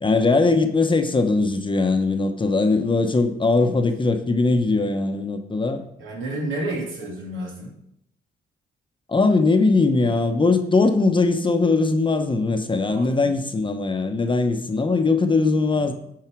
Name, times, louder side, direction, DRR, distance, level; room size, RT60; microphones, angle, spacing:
voice 1, 0.0-5.8 9.1-15.9, left 3 dB, 25° left, 6 dB, 0.9 m, -20 dB
voice 2, 6.0-7.7 12.8-13.3 15.7-15.9, right 1 dB, 80° right, -2 dB, 2.8 m, -31 dB
11.0 x 4.8 x 4.6 m, 0.75 s
cardioid pair, 95°, 20 cm